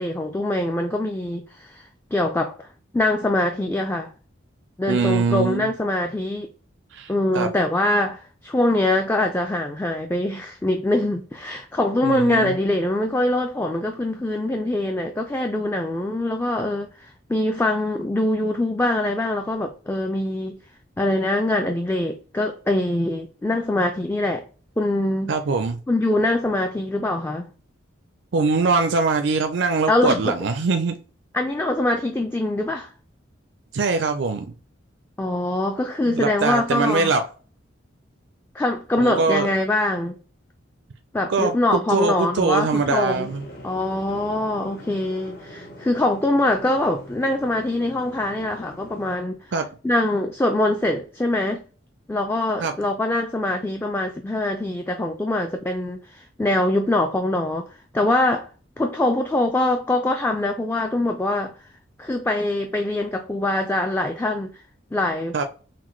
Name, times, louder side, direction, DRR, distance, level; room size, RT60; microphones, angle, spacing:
voice 1, 0.0-2.7 2.9-4.1 4.8-6.5 7.1-20.6 21.0-24.5 24.8-25.3 25.9-27.5 29.9-30.3 31.3-32.9 35.2-37.1 38.5-40.1 41.1-43.3 43.6-49.4 49.8-51.6 52.1-57.7 57.9-58.5 58.8-61.5 62.0-64.5 64.9-65.4, left 1 dB, 10° left, 0.3 m, -23 dB
voice 2, 4.9-5.7 6.9-7.5 12.0-12.5 25.3-25.8 28.3-31.0 33.7-34.5 36.1-37.2 39.0-39.5 41.3-43.4 49.5-49.7 52.6-52.7 65.3-65.4, right 4 dB, 65° right, 0.4 m, -22 dB
sound 1, 43.1-49.2, equal, 55° left, 1.1 m, -42 dB
5.8 x 2.1 x 3.1 m
head